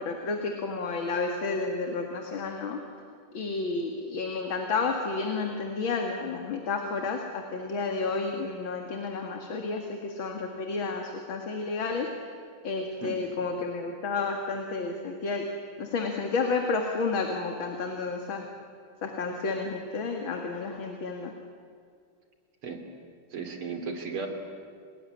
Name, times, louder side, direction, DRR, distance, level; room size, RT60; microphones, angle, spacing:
voice 1, 0.0-2.8 3.3-12.1 12.6-15.5 15.8-18.5 19.0-21.3, left 4 dB, 70° left, 3 dB, 2.8 m, -31 dB
voice 2, 23.3-24.3, right 4 dB, 85° right, 5 dB, 3.8 m, -35 dB
30.0 x 19.0 x 9.9 m, 2.3 s
omnidirectional pair, 2.3 m